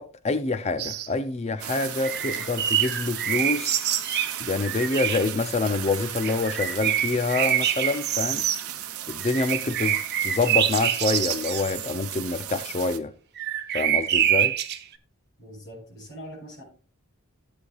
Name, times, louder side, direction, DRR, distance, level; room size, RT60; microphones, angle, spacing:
voice 1, 0.0-3.8 4.4-8.5 9.1-13.1 13.7-14.5, left 3 dB, 30° left, 0.5 m, -26 dB
sound 1, 0.8-1.1 1.8-5.3 6.2-8.6 9.2-11.9 13.4-14.8, right 10 dB, 50° right, 0.8 m, -26 dB
sound 2, 1.6-13.0, right 11 dB, 80° right, 0.8 m, -36 dB
voice 2, 15.4-16.6, equal, 50° left, 5.8 m, -42 dB
14.0 x 8.2 x 2.4 m
head